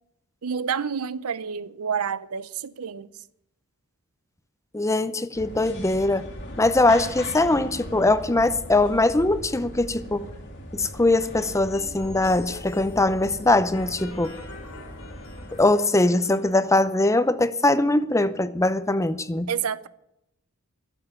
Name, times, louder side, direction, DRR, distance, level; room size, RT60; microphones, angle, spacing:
voice 1, 0.4-3.1 19.5-19.9, right 7 dB, 85° right, 0.6 m, -29 dB
voice 2, 4.7-6.3 6.6-10.3 10.7-14.4 15.5-19.5, left 2 dB, 15° left, 0.7 m, -21 dB
sound 1, 5.3-15.7, left 1 dB, 55° left, 2.2 m, -39 dB
sound 2, 11.7-16.7, left 2 dB, 75° left, 3.5 m, -44 dB
12.5 x 7.3 x 10.0 m
head